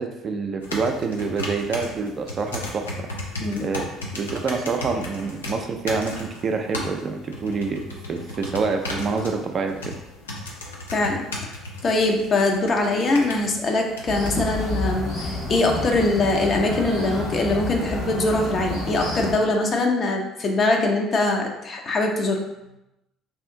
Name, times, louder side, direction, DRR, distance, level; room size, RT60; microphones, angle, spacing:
voice 1, 0.0-3.1 3.6-3.9 4.1-7.8 8.1-9.9, right 4 dB, 40° right, 4 dB, 0.4 m, -27 dB
sound 1, 0.6-14.4, left 2 dB, 80° left, 0.5 m, -35 dB
voice 2, 10.9-11.5 11.8-22.4, left 2 dB, 40° left, 1 dB, 0.6 m, -22 dB
sound 2, 14.1-19.4, left 2 dB, 65° left, 1.3 m, -29 dB
2.8 x 2.4 x 3.6 m, 0.92 s
figure-of-eight pair, 55°, 0 cm